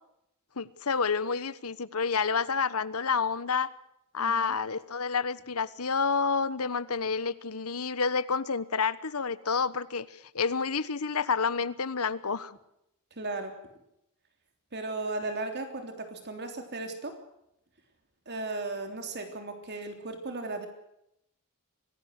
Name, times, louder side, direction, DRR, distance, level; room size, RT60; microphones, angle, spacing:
voice 1, 0.6-3.7 4.1-12.6, left 5 dB, 75° left, 16 dB, 1.2 m, -29 dB
voice 2, 4.2-4.5 13.1-13.6 14.7-17.2 18.2-20.7, right 2 dB, 50° right, 6 dB, 3.4 m, -36 dB
26.0 x 18.5 x 6.6 m, 0.80 s
head